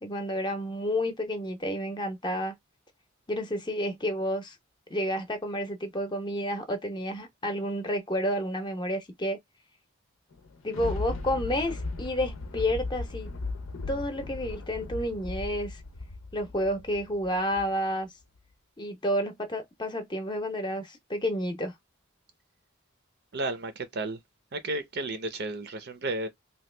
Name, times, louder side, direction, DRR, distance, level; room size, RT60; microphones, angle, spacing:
voice 1, 0.0-2.5 3.3-4.6 4.9-9.4 10.6-13.3 13.9-15.8 16.3-18.1 18.8-21.7, equal, 20° left, 0.7 m, -30 dB
Thunder, 10.3-17.9 18.4-18.5, left 3 dB, 75° left, 0.6 m, -37 dB
voice 2, 23.3-24.2 24.5-26.3, right 2 dB, 50° right, 0.6 m, -33 dB
2.9 x 2.3 x 3.2 m
head